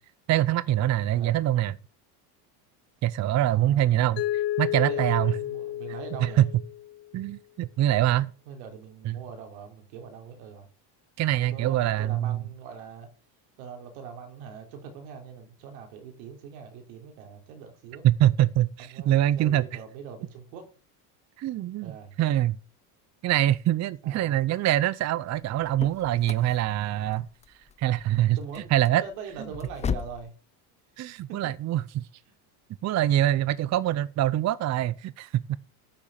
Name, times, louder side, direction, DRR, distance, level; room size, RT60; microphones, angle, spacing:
voice 1, 0.3-1.8 3.0-4.2 4.6-5.3 6.2-6.3 7.1-8.3 9.1-9.2 11.2-12.4 18.0-19.6 21.4-21.9 22.2-22.6 23.2-27.3 27.8-28.4 28.7-29.0 31.0-32.0 32.8-35.6, right 13 dB, 35° right, 0.6 m, -24 dB
voice 2, 3.4-4.2 4.7-6.4 8.5-10.7 11.4-13.1 13.6-18.0 18.8-20.7 21.8-22.2 24.0-24.4 28.4-28.7 29.0-30.3 31.3-31.4, right 6 dB, 80° right, 3.9 m, -42 dB
Mallet percussion, 4.2-7.1, left 13 dB, 60° left, 1.3 m, -31 dB
sound 1, 25.4-30.3, left 7 dB, 15° left, 0.4 m, -37 dB
9.9 x 6.9 x 7.5 m
supercardioid pair, 120°, 48 cm